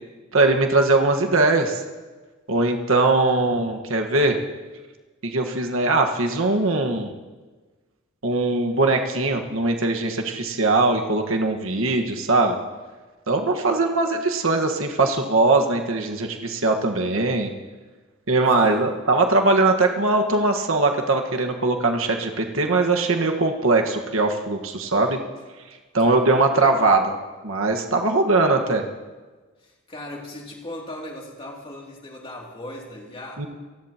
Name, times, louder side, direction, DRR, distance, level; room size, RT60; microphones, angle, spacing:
voice 1, 0.3-1.8 2.5-4.4 5.2-7.1 8.2-12.6 13.3-17.5 18.3-25.2 25.9-27.1 27.4-28.8 33.4-33.5, right 2 dB, 75° right, 3 dB, 1.5 m, -21 dB
voice 2, 18.5-18.8 29.6-33.4, left 1 dB, 25° left, -2 dB, 2.8 m, -38 dB
27.0 x 16.0 x 3.0 m, 1.3 s
head